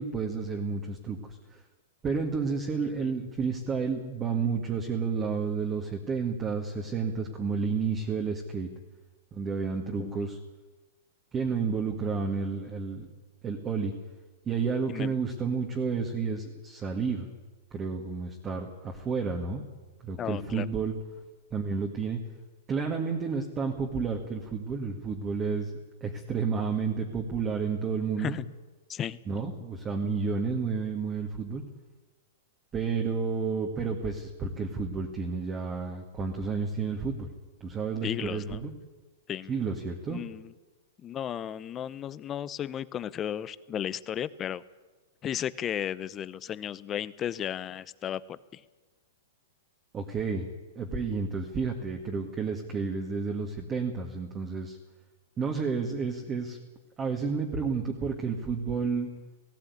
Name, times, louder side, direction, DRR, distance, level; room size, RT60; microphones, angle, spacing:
voice 1, 0.0-1.6 2.0-8.7 9.3-10.4 11.3-13.1 13.4-14.0 14.5-17.3 17.7-19.6 20.0-20.9 21.5-22.2 22.7-25.7 26.0-28.4 29.3-31.6 32.7-37.3 37.6-38.7 39.5-40.2 49.9-50.5 50.8-54.8 55.4-56.6 57.0-59.1, right 5 dB, 20° right, 2 dB, 1.8 m, -31 dB
voice 2, 20.2-20.7 28.2-28.4 28.9-29.2 38.0-38.7 39.3-39.5 40.1-40.5 41.0-44.6 45.2-48.6, left 10 dB, 20° left, 17 dB, 0.7 m, -35 dB
18.5 x 15.5 x 9.6 m, 1.2 s
hypercardioid pair, 150°, 0 cm